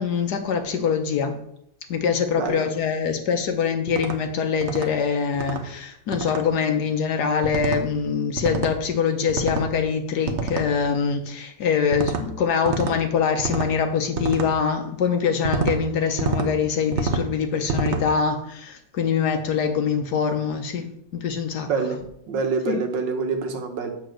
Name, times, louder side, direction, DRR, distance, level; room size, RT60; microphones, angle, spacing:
voice 1, 0.0-1.4 1.9-21.7 22.7-22.8, left 6 dB, 65° left, 6 dB, 1.2 m, -24 dB
voice 2, 2.3-2.7 21.7-22.0 22.3-23.9, right 4 dB, 70° right, 5 dB, 1.7 m, -26 dB
sound 1, 3.9-4.2 4.6-4.9 5.3-5.6 6.1-6.4 7.4-7.8 8.4-8.8 9.3-9.7 10.3-10.7 11.9-12.2 12.7-13.0 13.4-13.7 14.2-14.5 15.4-15.8 16.2-16.5 16.9-17.3 17.7-18.0, right 4 dB, 50° right, 0.8 m, -27 dB
8.1 x 4.0 x 6.2 m, 0.74 s
omnidirectional pair, 2.1 m